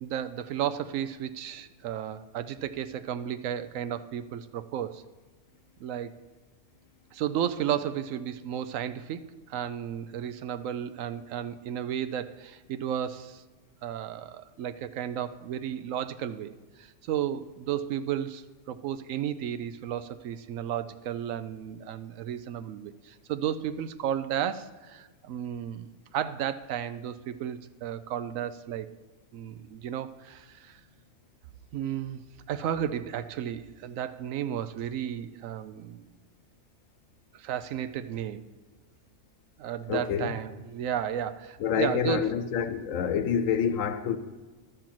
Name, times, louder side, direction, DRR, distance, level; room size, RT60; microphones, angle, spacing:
voice 1, 0.0-5.0 5.8-6.2 7.1-13.4 13.8-16.5 16.8-28.9 29.3-30.8 31.7-36.1 37.3-38.4 39.6-42.3, right 10 dB, 80° right, 1.0 m, -33 dB
voice 2, 39.9-40.4 41.6-44.2, left 8 dB, 80° left, 1.1 m, -27 dB
12.0 x 4.4 x 7.5 m
omnidirectional pair, 1.4 m